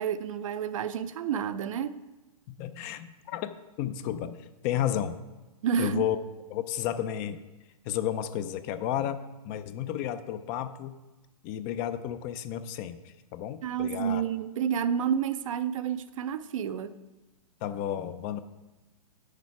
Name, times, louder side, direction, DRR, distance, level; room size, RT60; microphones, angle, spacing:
voice 1, 0.0-2.0 5.6-6.0 13.6-16.9, right 8 dB, 65° right, 0.5 m, -30 dB
voice 2, 2.5-5.2 5.8-6.2 6.5-7.4 7.8-9.2 9.4-10.9 11.4-14.2 17.6-18.4, left 11 dB, 30° left, 0.4 m, -32 dB
8.4 x 6.6 x 4.6 m
hypercardioid pair, 135°, 18 cm